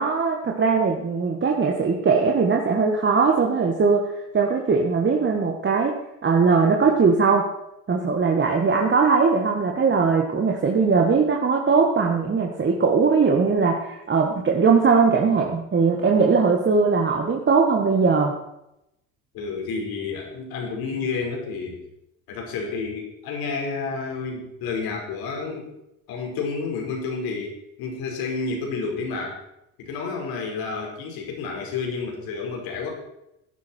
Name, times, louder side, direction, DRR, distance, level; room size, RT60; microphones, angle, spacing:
voice 1, 0.0-6.0 6.2-7.5 7.9-18.4, right 5 dB, 30° right, 1 dB, 1.8 m, -20 dB
voice 2, 19.3-21.8 22.3-25.7 26.1-29.4 29.8-32.9, left 4 dB, 70° left, 1 dB, 5.0 m, -30 dB
15.5 x 10.5 x 4.6 m, 0.85 s
supercardioid pair, 90°, 38 cm